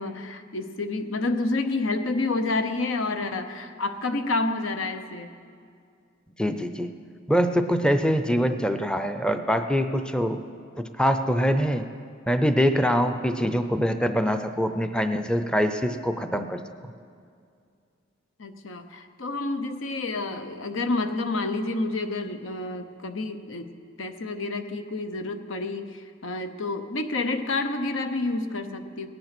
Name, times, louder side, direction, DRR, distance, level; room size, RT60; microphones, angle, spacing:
voice 1, 0.0-5.3 18.4-23.7 24.0-29.1, left 2 dB, 85° left, 8 dB, 0.9 m, -29 dB
voice 2, 6.4-7.0 7.3-10.4 10.8-11.9 12.3-16.6, equal, 5° left, 8 dB, 0.5 m, -24 dB
18.0 x 10.5 x 6.0 m, 2.3 s
head